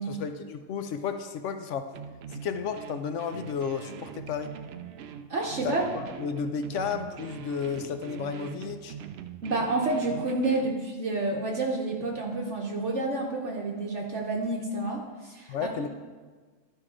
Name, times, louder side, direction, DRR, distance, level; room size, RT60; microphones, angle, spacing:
voice 1, 0.0-1.9 2.3-4.5 5.6-9.0 15.5-15.9, left 6 dB, 65° left, 8 dB, 0.8 m, -33 dB
sound 1, 1.9-10.8, right 8 dB, 75° right, 0.5 m, -42 dB
voice 2, 5.3-5.9 9.4-15.7, right 2 dB, 55° right, 0 dB, 1.1 m, -29 dB
11.5 x 4.6 x 4.9 m, 1.4 s
omnidirectional pair, 1.6 m